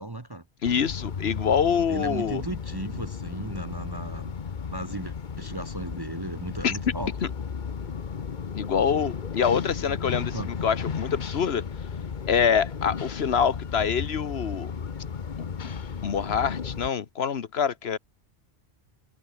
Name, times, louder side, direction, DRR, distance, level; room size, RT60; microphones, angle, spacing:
voice 1, 0.0-0.4 1.9-4.3 4.7-7.1 10.3-10.5, right 2 dB, 20° right, 1.0 m, -35 dB
voice 2, 0.6-2.4 6.6-6.7 8.5-11.6 12.3-14.7 16.0-18.0, left 7 dB, 65° left, 1.3 m, -25 dB
sound 1, 0.6-16.9, left 6 dB, 45° left, 1.1 m, -34 dB
omnidirectional pair, 1.2 m